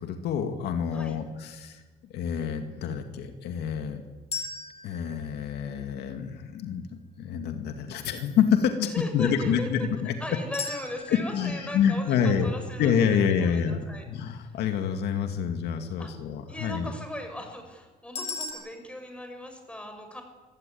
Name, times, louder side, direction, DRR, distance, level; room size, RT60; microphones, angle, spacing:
voice 1, 0.0-4.0 4.8-6.8 7.2-10.1 11.1-12.5 12.8-16.9, left 7 dB, 75° left, 6 dB, 2.3 m, -27 dB
sound 1, 4.3-6.4 10.5-13.6 18.2-18.5, left 4 dB, 40° left, 8.0 m, -39 dB
voice 2, 8.9-9.7 10.2-12.9 13.4-14.0 14.4-14.6 16.0-16.1 16.5-20.2, left 1 dB, 5° left, 5 dB, 5.9 m, -38 dB
25.0 x 16.0 x 9.4 m, 1.2 s
cardioid pair, 110°, 17 cm